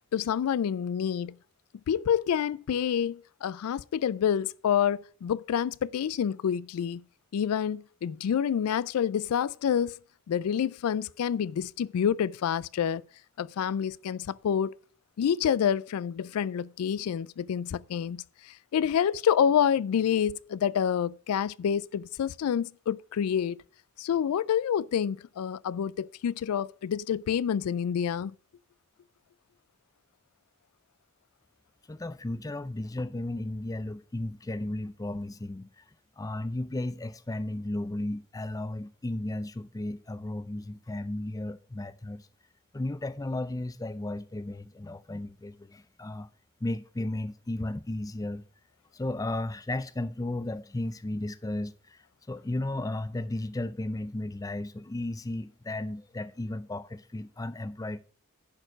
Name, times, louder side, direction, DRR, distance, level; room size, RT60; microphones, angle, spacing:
voice 1, 0.1-1.3 1.9-7.0 7.3-10.0 10.3-13.0 13.4-14.7 15.2-23.6 24.0-28.3, left 8 dB, 90° left, 0.3 m, -28 dB
voice 2, 31.9-35.8 36.2-42.3 42.7-46.3 46.6-48.4 48.9-58.0, left 1 dB, 15° left, 0.4 m, -34 dB
10.5 x 4.5 x 6.2 m
head